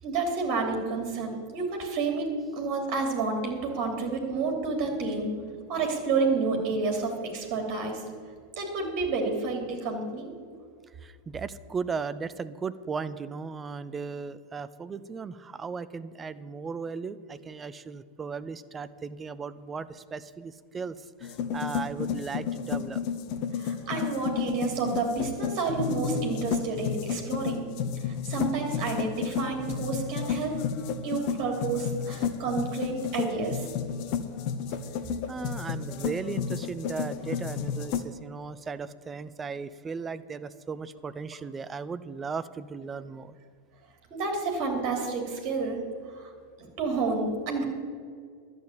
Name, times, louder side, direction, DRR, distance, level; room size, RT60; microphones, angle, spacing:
voice 1, 0.0-2.3 2.5-5.3 5.7-8.0 8.6-10.3 23.5-27.7 28.1-30.6 31.0-33.7 44.1-45.8 46.1-46.3 46.6-47.6, right 4 dB, 40° right, 2 dB, 3.1 m, -30 dB
voice 2, 11.0-23.0 35.3-43.4, right 5 dB, 20° right, 14 dB, 0.5 m, -36 dB
sound 1, 21.2-38.0, left 7 dB, 45° left, 0.9 m, -32 dB
11.5 x 8.0 x 8.7 m, 2.1 s
figure-of-eight pair, 90°, 0 cm